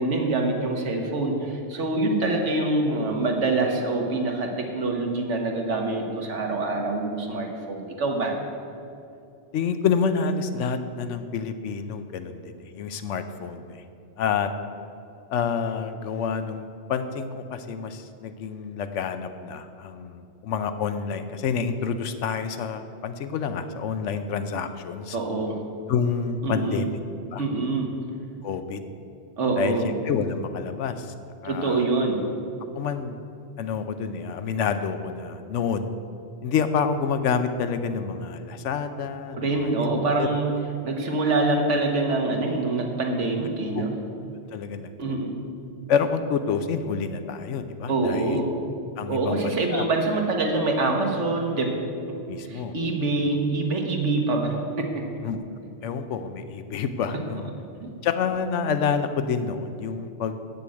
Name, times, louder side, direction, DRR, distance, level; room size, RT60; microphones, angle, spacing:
voice 1, 0.0-8.3 25.1-25.6 26.4-26.9 27.4-27.9 29.4-29.9 31.4-32.2 39.3-40.5 40.8-43.9 45.0-45.3 47.9-48.5 49.1-51.7 52.5-55.0 57.8-57.9, right 2 dB, 80° right, 2 dB, 1.5 m, -25 dB
voice 2, 9.5-13.8 14.2-14.5 15.3-25.2 25.9-27.0 27.3-27.4 28.4-28.9 29.6-31.1 31.4-31.8 32.7-33.2 33.6-35.9 36.4-39.7 40.2-40.3 43.7-43.8 44.5-45.2 45.9-48.4 49.0-49.9 52.3-52.7 53.1-53.3 55.2-55.4 55.8-57.5 58.0-60.4, left 6 dB, 80° left, 9 dB, 1.0 m, -28 dB
8.5 x 6.8 x 7.7 m, 2.6 s
omnidirectional pair, 1.2 m